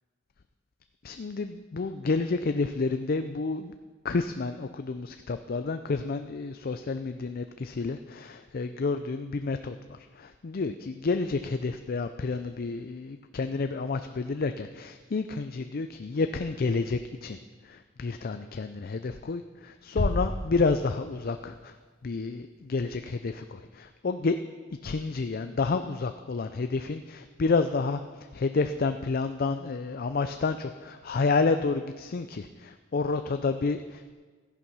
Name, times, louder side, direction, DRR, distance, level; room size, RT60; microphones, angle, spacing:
voice 1, 1.0-3.7 4.0-17.4 17.6-21.7 22.0-24.4 24.8-28.0 28.3-34.1, left 4 dB, 50° left, 9 dB, 0.5 m, -30 dB
sound 1, 20.0-21.9, left 1 dB, 80° left, 1.2 m, -32 dB
14.0 x 10.5 x 5.6 m, 1.4 s
head